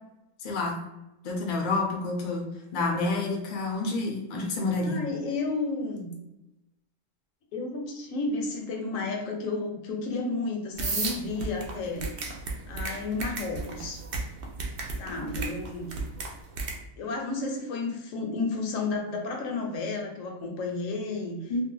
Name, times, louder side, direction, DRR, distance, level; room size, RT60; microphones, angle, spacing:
voice 1, 0.4-0.8 1.2-2.5 2.7-5.0 21.5-21.6, left 3 dB, 45° left, 0 dB, 0.6 m, -28 dB
voice 2, 4.8-6.1 7.5-12.3 12.7-14.0 15.0-16.0 17.0-21.5, left 3 dB, 75° left, 1 dB, 1.1 m, -32 dB
sound 1, 10.8-16.8, right 3 dB, 60° right, 0.6 m, -33 dB
2.6 x 2.2 x 3.7 m, 0.94 s
omnidirectional pair, 1.4 m